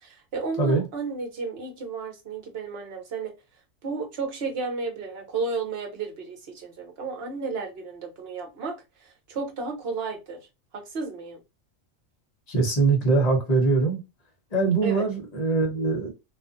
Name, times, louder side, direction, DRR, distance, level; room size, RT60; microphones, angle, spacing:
voice 1, 0.0-3.3 3.8-10.4 10.7-11.4 14.8-15.1, right 4 dB, 55° right, 0.9 m, -33 dB
voice 2, 12.5-14.0 14.5-16.1, right 3 dB, 35° left, 0.8 m, -22 dB
2.4 x 2.4 x 2.5 m
omnidirectional pair, 1.4 m